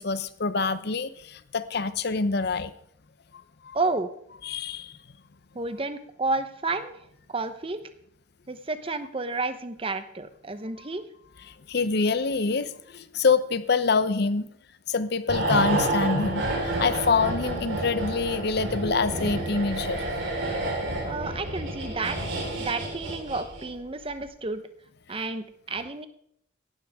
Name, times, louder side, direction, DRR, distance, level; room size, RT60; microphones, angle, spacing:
voice 1, 0.0-2.7 3.6-3.8 4.4-5.0 11.5-14.5 14.9-20.0, left 4 dB, 55° left, 14 dB, 0.7 m, -26 dB
voice 2, 3.7-4.1 5.5-7.8 8.5-11.0 21.0-22.3 22.6-24.6 25.1-26.1, right 3 dB, 30° right, 10 dB, 0.9 m, -31 dB
sound 1, 15.3-23.8 24.1-24.3, right 2 dB, 85° right, 4.4 m, -29 dB
17.0 x 12.0 x 3.6 m, 0.69 s
head